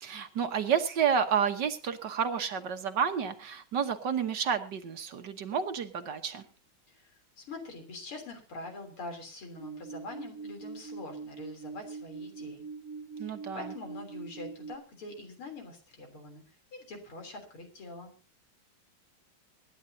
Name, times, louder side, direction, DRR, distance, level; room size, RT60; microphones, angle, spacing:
voice 1, 0.0-6.4 13.2-13.7, right 7 dB, 60° right, 7 dB, 1.6 m, -30 dB
voice 2, 6.9-12.6 13.2-16.4 16.7-18.1, left 2 dB, 80° left, 4 dB, 4.2 m, -44 dB
sound 1, 9.6-14.7, right 4 dB, 45° right, 1.7 m, -43 dB
25.0 x 11.0 x 2.7 m, 0.34 s
omnidirectional pair, 2.3 m